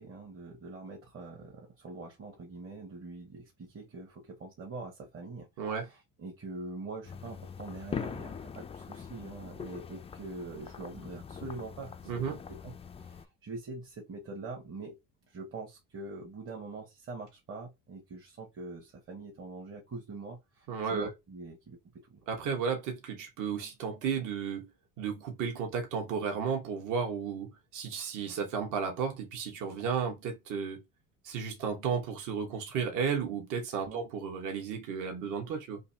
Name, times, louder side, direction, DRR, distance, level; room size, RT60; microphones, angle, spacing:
voice 1, 0.0-15.0 15.3-22.2 33.8-34.0, right 3 dB, 35° right, 1.2 m, -44 dB
sound 1, 7.0-13.3, left 6 dB, 15° left, 0.4 m, -42 dB
voice 2, 12.1-12.4 20.7-21.1 22.3-24.7 25.0-30.8 31.2-35.8, right 6 dB, 55° right, 1.3 m, -33 dB
3.8 x 2.7 x 2.7 m
supercardioid pair, 100°, 36 cm